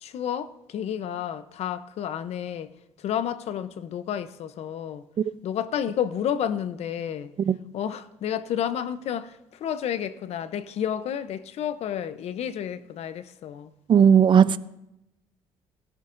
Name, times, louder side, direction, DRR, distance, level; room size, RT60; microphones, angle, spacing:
voice 1, 0.0-2.7 3.0-5.0 5.4-7.3 7.7-13.7, left 9 dB, 65° left, 0.7 m, -31 dB
voice 2, 13.9-14.6, right 7 dB, 45° right, 0.5 m, -16 dB
20.5 x 11.0 x 2.6 m
cardioid pair, 90°, 11 cm